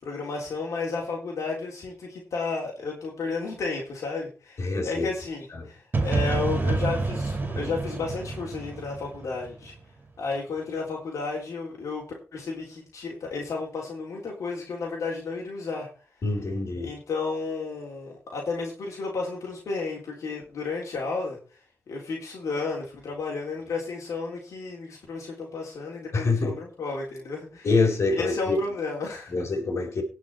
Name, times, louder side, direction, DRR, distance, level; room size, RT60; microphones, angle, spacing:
voice 1, 0.0-9.7 10.2-12.0 12.3-15.9 16.8-21.4 21.9-27.7 28.1-29.4, left 4 dB, 85° left, -2 dB, 3.7 m, -32 dB
voice 2, 4.6-5.1 5.5-5.7 16.2-16.9 26.1-26.6 27.6-28.6 29.3-30.0, left 3 dB, 60° left, 1 dB, 4.5 m, -25 dB
sound 1, 5.9-9.8, right 3 dB, 35° right, 2.5 m, -28 dB
18.5 x 6.3 x 4.6 m, 0.35 s
cardioid pair, 95°, 5 cm